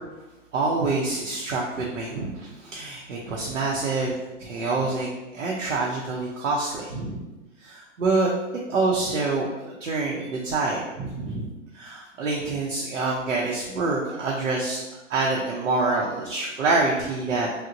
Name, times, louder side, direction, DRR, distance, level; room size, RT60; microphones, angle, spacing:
voice 1, 0.5-4.1 4.4-5.1 5.3-7.2 7.6-8.3 8.7-14.8 15.1-17.5, right 3 dB, 85° right, -3 dB, 0.6 m, -26 dB
2.9 x 2.0 x 2.5 m, 1.1 s
hypercardioid pair, 120°, 37 cm